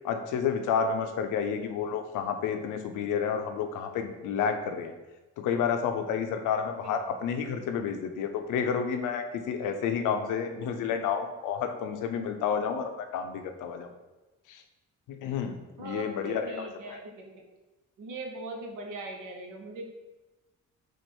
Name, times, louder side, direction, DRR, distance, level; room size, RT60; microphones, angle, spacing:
voice 1, 0.0-4.9 5.4-13.9 14.5-14.6 15.1-17.0, left 7 dB, 85° left, 7 dB, 0.6 m, -30 dB
voice 2, 15.8-17.4 18.0-19.9, right 2 dB, 85° right, 2 dB, 0.9 m, -40 dB
4.4 x 2.5 x 4.4 m, 1.1 s
cardioid pair, 90°, 30 cm